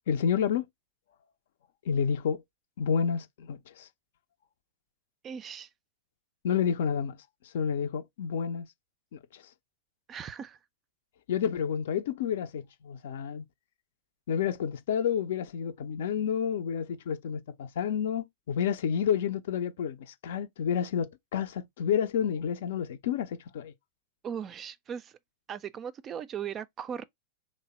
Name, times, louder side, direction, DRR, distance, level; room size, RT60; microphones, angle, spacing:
voice 1, 0.1-0.7 1.9-2.4 2.8-3.9 6.4-8.7 9.1-9.4 11.3-13.5 14.3-23.7, left 7 dB, 65° left, 0.5 m, -30 dB
voice 2, 5.2-5.7 10.1-10.6 24.2-25.1 25.5-27.1, right 8 dB, 30° right, 0.3 m, -38 dB
3.3 x 2.0 x 4.1 m
hypercardioid pair, 100°, 0 cm